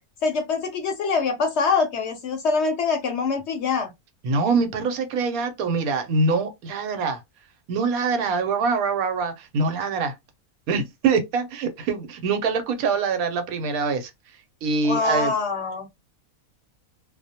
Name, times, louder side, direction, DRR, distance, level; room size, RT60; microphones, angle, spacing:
voice 1, 0.2-3.9 14.8-15.9, left 4 dB, 65° left, 0.7 m, -24 dB
voice 2, 4.2-7.2 7.7-10.1 10.7-14.1 14.6-15.3, right 4 dB, 80° right, 1.1 m, -24 dB
2.4 x 2.1 x 2.7 m
omnidirectional pair, 1.5 m